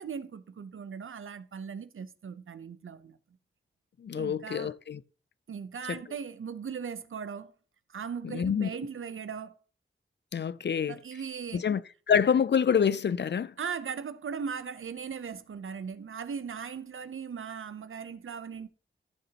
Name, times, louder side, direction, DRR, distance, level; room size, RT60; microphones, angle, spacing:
voice 1, 0.0-3.2 4.1-4.7 5.5-7.5 7.9-9.6 10.9-11.6 13.6-18.7, right 6 dB, 80° right, 0.7 m, -38 dB
voice 2, 4.0-5.0 5.9-6.0 8.2-8.7 10.3-11.0 11.5-11.8 12.1-13.5, left 7 dB, 60° left, 0.5 m, -26 dB
14.0 x 6.6 x 2.9 m
cardioid pair, 45°, 21 cm